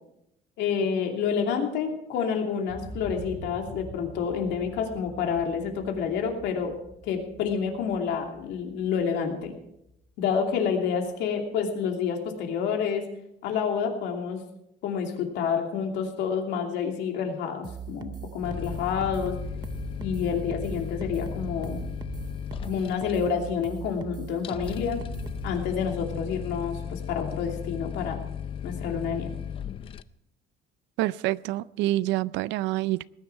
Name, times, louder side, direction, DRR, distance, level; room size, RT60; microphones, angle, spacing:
voice 1, 0.6-6.7 7.0-9.5 10.2-13.0 13.4-14.4 14.8-19.4 20.0-21.8 22.6-25.0 25.4-28.2 28.6-29.3, left 6 dB, 70° left, 2.7 m, -28 dB
sound 1, 2.7-10.6 11.0-11.1, right 1 dB, 10° left, 3.2 m, -46 dB
sound 2, 17.6-25.5, right 8 dB, 20° right, 0.6 m, -39 dB
sound 3, 18.4-30.0, left 8 dB, 30° left, 0.4 m, -36 dB
voice 2, 31.0-33.1, right 16 dB, 75° right, 0.4 m, -27 dB
19.5 x 10.5 x 4.6 m
cardioid pair, 180°, 19 cm